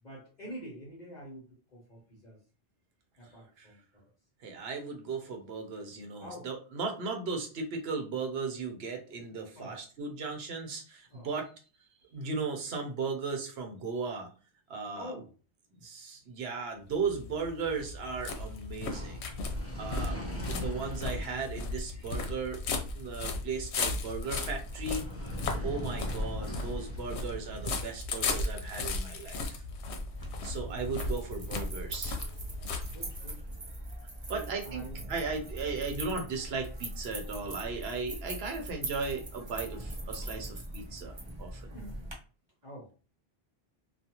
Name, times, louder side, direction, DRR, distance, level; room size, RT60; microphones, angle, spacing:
voice 1, 0.0-1.5 1.7-2.4 3.2-4.0 6.2-6.5 9.6-9.8 11.1-11.3 14.9-15.3 30.6-30.9 32.8-33.5 34.3-35.1 35.8-36.0 41.7-42.1 42.6-42.9, equal, 45° left, -4 dB, 0.8 m, -46 dB
voice 2, 4.4-11.5 12.1-14.3 14.7-15.1 15.8-19.3 19.8-22.6 22.9-25.0 25.6-29.6 30.4-32.2 34.3-41.1 41.4-41.7, right 4 dB, 70° right, 3 dB, 0.9 m, -36 dB
sound 1, 16.9-33.4, left 3 dB, 85° left, 0.8 m, -36 dB
sound 2, 17.8-30.9, left 1 dB, 15° left, 0.5 m, -44 dB
sound 3, 30.1-42.1, right 1 dB, 35° right, 0.5 m, -41 dB
2.4 x 2.3 x 2.8 m, 0.36 s
omnidirectional pair, 1.1 m